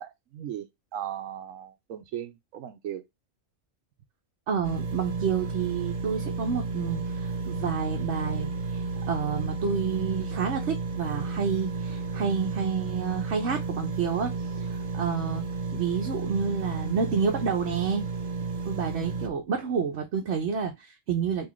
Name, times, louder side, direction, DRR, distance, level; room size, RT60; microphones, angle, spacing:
voice 1, 0.0-3.0, right 10 dB, 85° right, 1.1 m, -37 dB
voice 2, 4.5-14.3 14.7-15.5 15.7-18.1 18.6-21.5, right 6 dB, 65° right, 1.0 m, -29 dB
sound 1, 4.6-19.3, right 4 dB, 40° right, 0.7 m, -32 dB
3.9 x 2.9 x 3.0 m
omnidirectional pair, 1.3 m